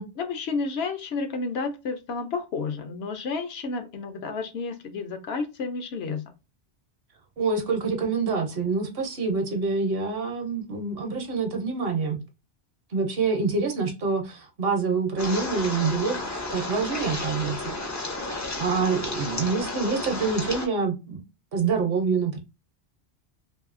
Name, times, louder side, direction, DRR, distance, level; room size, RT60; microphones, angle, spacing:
voice 1, 0.2-6.3, left 4 dB, 75° left, 0.8 m, -31 dB
voice 2, 7.4-12.2 12.9-17.7 18.6-21.2 21.5-22.4, right 4 dB, 65° right, 0.9 m, -26 dB
sound 1, 15.2-20.7, left 2 dB, 30° left, 0.3 m, -32 dB
2.7 x 2.6 x 2.4 m
omnidirectional pair, 1.1 m